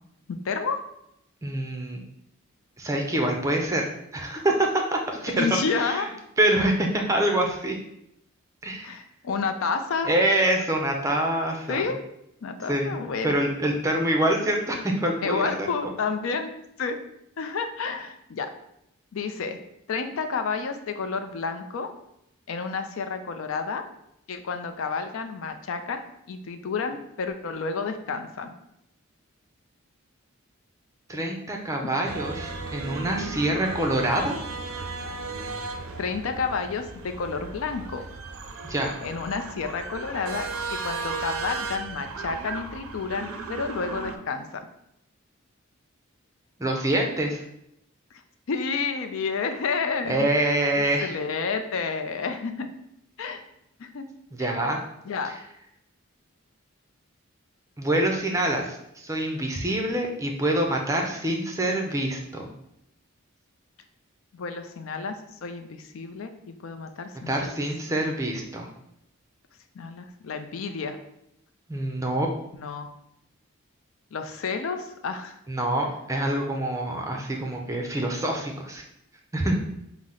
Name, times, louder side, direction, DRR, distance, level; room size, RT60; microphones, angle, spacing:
voice 1, 0.3-0.8 5.4-6.1 8.8-10.1 11.7-12.0 12.4-13.4 15.2-16.5 16.8-17.0 17.4-18.5 19.1-19.6 19.9-21.9 22.5-23.8 24.3-28.5 36.0-38.0 39.0-44.7 48.5-50.3 51.0-52.7 53.2-53.4 53.8-54.1 54.4-54.6 55.1-55.3 64.3-65.1 65.4-67.7 69.8-71.0 72.6-72.9 74.1-75.3, left 5 dB, 70° left, 7 dB, 0.4 m, -30 dB
voice 2, 1.4-2.0 2.8-6.1 6.4-7.8 8.6-8.9 10.0-11.8 12.7-12.9 13.2-15.7 31.1-34.4 38.6-39.0 46.6-47.4 50.1-51.1 54.3-54.8 57.8-62.5 67.3-68.7 71.7-72.3 75.5-78.8 79.3-79.6, right 1 dB, 15° right, 2 dB, 0.4 m, -25 dB
sound 1, 32.0-44.2, right 4 dB, 80° right, 0.5 m, -36 dB
5.7 x 2.0 x 3.7 m, 0.80 s
head